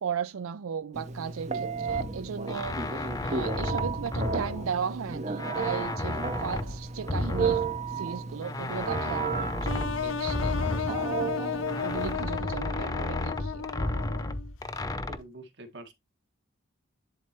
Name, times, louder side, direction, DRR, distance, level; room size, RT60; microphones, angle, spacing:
voice 1, 0.0-13.7, right 7 dB, 85° right, 0.4 m, -36 dB
Telephone, 0.9-12.1, right 5 dB, 35° right, 0.7 m, -33 dB
sound 1, 1.9-5.1 5.4-8.0 8.4-11.4 11.7-15.2, left 2 dB, 15° left, 0.5 m, -33 dB
sound 2, 9.6-14.5, left 6 dB, 70° left, 0.7 m, -33 dB
voice 2, 15.1-15.9, right 2 dB, 55° right, 1.9 m, -45 dB
10.5 x 4.3 x 3.0 m
head